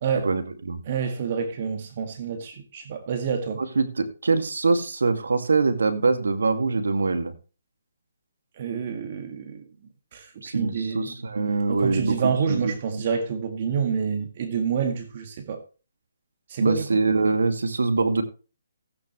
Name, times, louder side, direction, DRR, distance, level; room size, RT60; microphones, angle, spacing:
voice 1, 0.2-0.8 3.6-7.3 10.4-13.0 16.6-18.2, right 3 dB, 80° right, 2.2 m, -24 dB
voice 2, 0.9-3.6 8.6-9.6 10.1-11.1 11.7-15.6 16.5-17.0, right 6 dB, 40° right, 1.9 m, -28 dB
16.0 x 8.9 x 3.1 m
hypercardioid pair, 155°, 0 cm